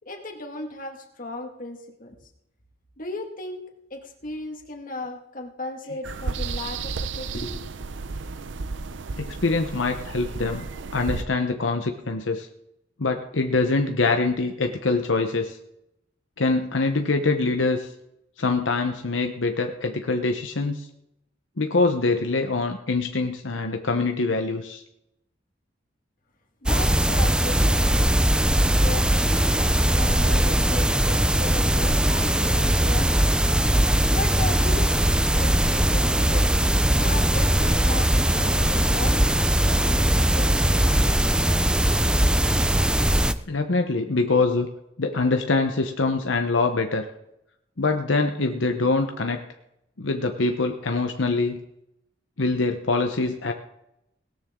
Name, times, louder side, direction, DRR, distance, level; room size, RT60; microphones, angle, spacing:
voice 1, 0.0-2.2 3.0-7.9 26.6-28.2 28.8-33.2 34.1-36.6 37.0-41.2, left 2 dB, 45° left, 3 dB, 2.1 m, -36 dB
sound 1, 6.0-11.2, right 4 dB, 75° right, 0.7 m, -33 dB
voice 2, 9.2-10.7 10.9-12.5 13.0-15.6 16.4-17.9 18.4-20.9 21.6-24.8 43.5-44.7 45.0-47.1 47.8-49.4 50.0-51.6 52.4-53.5, left 3 dB, 80° left, 5 dB, 1.0 m, -24 dB
sound 2, 26.7-43.3, right 1 dB, 5° right, 0.5 m, -20 dB
18.0 x 13.0 x 3.8 m, 0.81 s
head